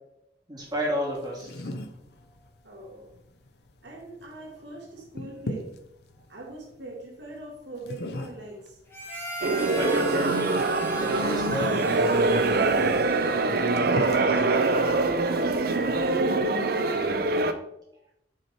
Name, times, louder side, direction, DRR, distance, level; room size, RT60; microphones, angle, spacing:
voice 1, 0.5-1.7 9.6-10.6 11.0-11.9, equal, 25° right, -6 dB, 3.0 m, -31 dB
sound 1, 0.6-16.4, left 1 dB, 60° left, 0.7 m, -41 dB
voice 2, 2.6-3.1 3.8-5.7 6.3-8.8 13.4-17.4, right 2 dB, 75° right, -1 dB, 1.8 m, -41 dB
Harmonica, 8.9-13.9, right 1 dB, 15° left, 1.5 m, -38 dB
sound 2, 9.4-17.5, right 3 dB, 55° right, 0.6 m, -24 dB
9.7 x 4.5 x 4.5 m, 0.80 s
head